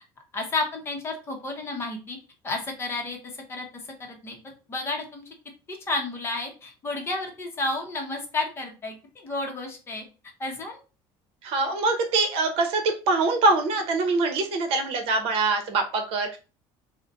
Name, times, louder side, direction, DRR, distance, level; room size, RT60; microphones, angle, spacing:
voice 1, 0.3-2.2 2.4-3.2 3.5-3.7 4.0-4.4 4.7-5.2 5.7-9.0 9.2-10.0 10.4-10.8, left 2 dB, 20° left, 2 dB, 0.8 m, -31 dB
voice 2, 11.4-16.4, right 3 dB, 60° right, 5 dB, 0.9 m, -24 dB
3.9 x 2.1 x 3.9 m, 0.32 s
cardioid pair, 160°, 11 cm